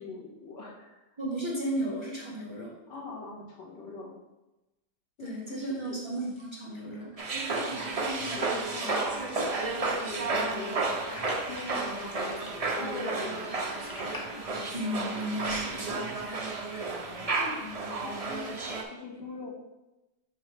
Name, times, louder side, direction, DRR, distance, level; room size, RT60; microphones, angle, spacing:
voice 1, 0.0-1.0 2.9-4.2 5.2-6.0 7.3-9.3 9.9-13.8 17.4-18.6 18.9-19.5, left 3 dB, 90° left, -5 dB, 2.5 m, -41 dB
voice 2, 1.2-2.7 5.2-7.1 14.7-16.4 16.7-16.9, right 1 dB, 15° right, -6 dB, 1.4 m, -34 dB
sound 1, 5.2-14.2, left 1 dB, 20° left, 0.6 m, -49 dB
sound 2, 7.2-18.8, right 3 dB, 70° right, 0.3 m, -32 dB
5.9 x 5.7 x 3.5 m, 0.99 s
omnidirectional pair, 1.9 m